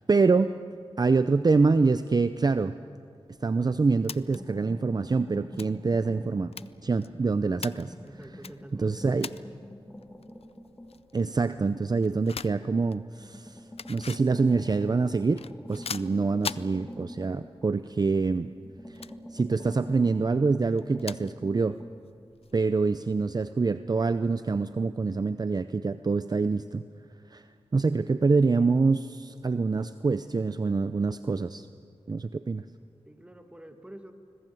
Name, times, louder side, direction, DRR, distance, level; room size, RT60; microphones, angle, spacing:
voice 1, 0.1-0.5 1.0-2.7 3.4-6.5 6.8-7.9 8.8-9.3 11.1-13.6 13.9-15.4 15.7-18.5 18.9-19.0 19.3-21.8 22.5-26.8 27.3-27.4 27.7-31.7 32.1-32.6, right 4 dB, 40° right, 12 dB, 0.6 m, -25 dB
sound 1, 3.3-22.8, left 6 dB, 70° left, 0.5 m, -45 dB
sound 2, 4.3-6.8 7.1-12.7 13.2-18.2 18.6-21.9, left 1 dB, 15° left, 2.3 m, -46 dB
voice 2, 8.1-9.5 33.0-34.1, right 1 dB, 10° right, 6 dB, 2.2 m, -47 dB
25.5 x 20.5 x 7.8 m, 2.3 s
wide cardioid pair, 70°, 11 cm